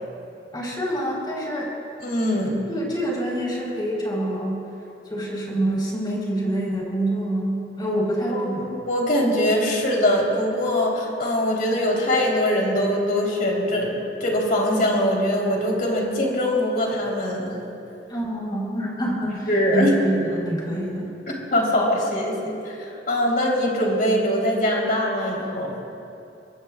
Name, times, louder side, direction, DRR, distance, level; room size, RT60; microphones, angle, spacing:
voice 1, 0.5-1.7 2.7-4.5 5.1-8.7 18.1-21.1, right 1 dB, 25° left, -4 dB, 4.1 m, -26 dB
voice 2, 2.0-2.6 8.3-17.5 19.5-19.9 21.3-25.8, left 1 dB, 50° left, -2 dB, 3.6 m, -22 dB
25.0 x 23.0 x 2.4 m, 2.7 s
head